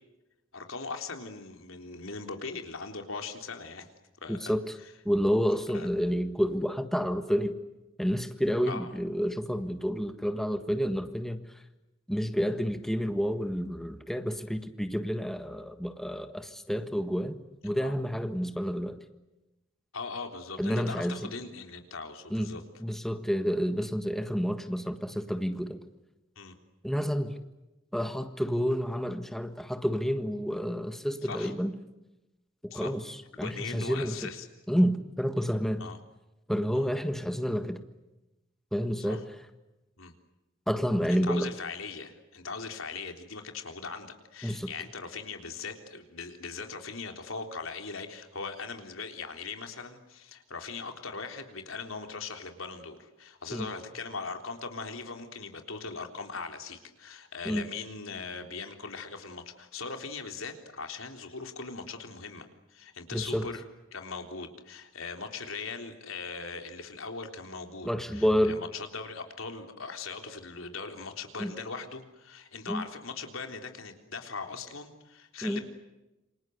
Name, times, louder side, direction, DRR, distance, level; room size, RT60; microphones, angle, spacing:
voice 1, 0.5-3.9 4.2-4.5 5.7-5.9 8.7-8.9 17.8-17.9 19.9-22.6 26.4-26.6 31.2-31.5 32.7-32.9 33.4-34.5 35.8-36.0 36.7-36.8 39.1-39.2 40.0-40.1 41.1-63.6 63.9-75.6, left 4 dB, 80° left, 5 dB, 3.7 m, -40 dB
voice 2, 4.3-4.8 5.0-7.6 8.0-11.6 12.1-19.0 20.6-21.3 22.3-22.5 22.8-25.8 26.8-27.4 27.9-31.7 32.6-34.3 34.7-35.9 36.5-37.8 38.7-39.2 40.7-41.5 44.4-44.7 53.5-53.7 57.4-57.6 63.1-63.5 67.8-68.6 71.4-71.5 72.7-72.8 75.4-75.6, equal, ahead, 8 dB, 1.5 m, -29 dB
28.0 x 26.0 x 8.0 m, 0.99 s
head